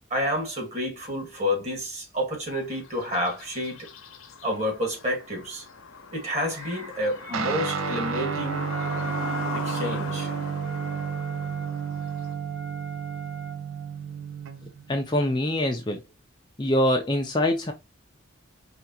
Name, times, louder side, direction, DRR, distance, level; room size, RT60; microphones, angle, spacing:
voice 1, 0.1-3.9 4.4-5.6 6.1-8.7 9.5-10.3, left 1 dB, 35° right, 2.0 m, -29 dB
sound 1, 2.7-12.3, left 5 dB, 90° left, 0.8 m, -40 dB
Guitar, 7.3-15.0, right 6 dB, 85° right, 0.7 m, -31 dB
Wind instrument woodwind instrument, 8.7-13.9, right 5 dB, 60° right, 2.2 m, -40 dB
voice 2, 14.9-16.0 16.6-17.7, left 1 dB, 20° left, 0.6 m, -24 dB
4.8 x 3.4 x 2.8 m
head